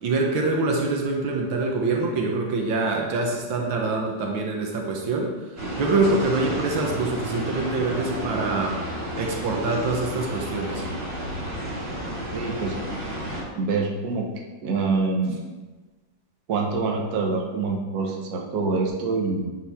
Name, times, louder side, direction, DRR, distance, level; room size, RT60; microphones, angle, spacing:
voice 1, 0.0-5.3 5.8-8.8 9.2-10.8, right 3 dB, 80° right, 1 dB, 1.8 m, -25 dB
sound 1, 5.6-13.4, equal, 30° right, 1.8 m, -31 dB
voice 2, 12.3-12.7 13.5-14.3 14.6-15.4 16.5-19.5, right 4 dB, 55° right, 1 dB, 1.3 m, -25 dB
10.5 x 4.6 x 3.5 m, 1.3 s
omnidirectional pair, 2.1 m